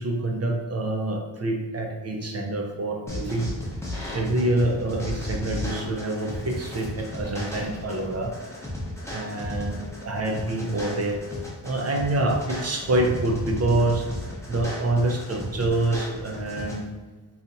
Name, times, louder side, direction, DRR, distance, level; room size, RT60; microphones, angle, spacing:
voice 1, 0.0-3.5 4.1-8.3 9.1-11.2 11.6-14.0 14.5-16.8, right 2 dB, 35° right, 2 dB, 0.5 m, -26 dB
sound 1, 3.1-16.8, left 1 dB, 5° left, 0.6 m, -34 dB
2.8 x 2.4 x 3.9 m, 1.2 s
wide cardioid pair, 125°, 45 cm